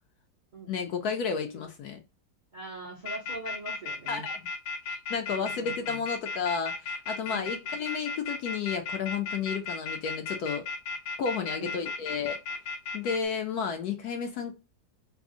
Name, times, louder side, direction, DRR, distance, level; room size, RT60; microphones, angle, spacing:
voice 1, 0.7-2.0 4.1-4.4 4.8-10.6 11.2-12.4 12.9-14.5, left 6 dB, 70° left, 1.0 m, -32 dB
voice 2, 2.5-4.3 5.3-6.0 7.3-7.5 11.3-11.8, right 2 dB, 45° right, 0.6 m, -42 dB
sound 1, 3.0-13.2, left 3 dB, 90° left, 1.4 m, -34 dB
3.5 x 2.0 x 3.6 m
omnidirectional pair, 2.0 m